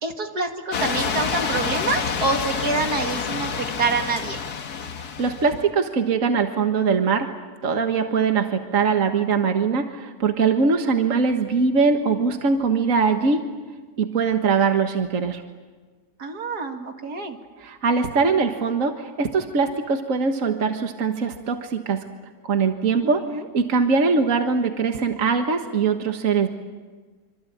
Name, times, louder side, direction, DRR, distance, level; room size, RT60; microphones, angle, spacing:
voice 1, 0.0-4.4 16.2-17.4 23.0-23.4, right 3 dB, 80° right, 4 dB, 2.7 m, -26 dB
sound 1, 0.7-5.6, left 6 dB, 75° left, 1.8 m, -28 dB
voice 2, 5.0-7.3 7.6-13.4 14.0-15.4 17.6-22.0 22.4-23.2 23.5-26.5, right 5 dB, 55° right, 5 dB, 1.9 m, -22 dB
26.5 x 26.0 x 8.7 m, 1.4 s
omnidirectional pair, 1.7 m